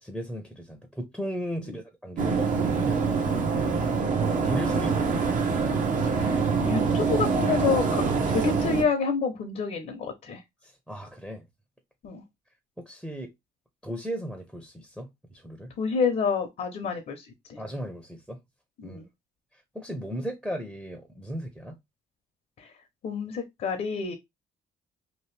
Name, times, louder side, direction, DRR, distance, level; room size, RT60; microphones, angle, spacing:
voice 1, 0.0-3.1 4.0-5.4 10.6-11.4 12.8-13.3 13.8-15.7 17.6-18.4 18.8-19.0 19.7-21.8, equal, ahead, 0.7 m, -36 dB
sound 1, 2.2-8.8, right 5 dB, 50° right, 0.8 m, -25 dB
voice 2, 6.1-8.0 8.3-10.4 12.0-12.2 15.8-17.6 18.8-19.0 22.6-22.7 23.0-24.1, left 5 dB, 50° left, 0.8 m, -28 dB
2.9 x 2.6 x 3.2 m
cardioid pair, 110°, 17 cm